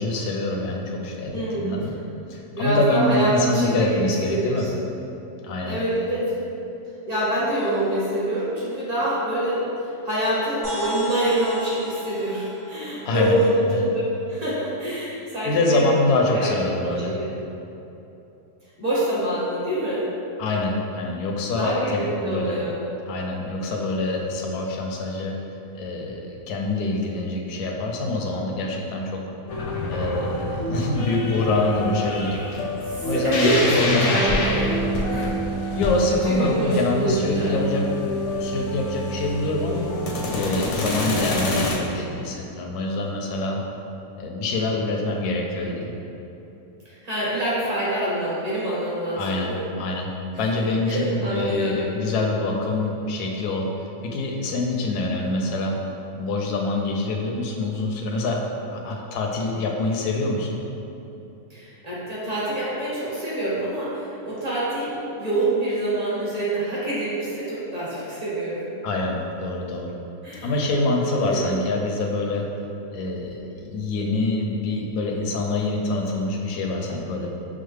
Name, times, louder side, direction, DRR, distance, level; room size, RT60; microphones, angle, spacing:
voice 1, 0.0-1.9 2.3-4.7 5.4-5.8 13.0-13.9 15.4-17.2 20.4-22.6 23.1-25.4 25.7-29.2 29.9-32.4 32.9-34.3 35.7-37.9 38.4-39.9 40.3-43.6 44.2-45.9 49.2-49.5 49.8-50.1 50.4-53.7 54.0-55.8 56.1-58.4 58.7-60.6 68.8-69.9 70.4-72.5 72.9-77.3, left 2 dB, 80° left, 0 dB, 1.1 m, -25 dB
voice 2, 1.3-1.9 2.5-4.7 5.6-6.3 7.1-14.0 14.3-15.8 16.3-16.5 16.8-17.3 18.8-20.1 21.5-22.8 32.7-34.7 35.0-35.3 36.3-37.6 46.8-49.7 50.9-51.9 61.5-68.6 70.2-70.5 71.0-71.5, right 1 dB, 25° right, -10 dB, 1.1 m, -26 dB
sound 1, 10.6-14.4, equal, 65° right, 2.0 m, -35 dB
sound 2, 29.5-41.8, left 1 dB, 60° left, 0.8 m, -27 dB
6.1 x 2.1 x 3.2 m, 2.9 s
omnidirectional pair, 1.7 m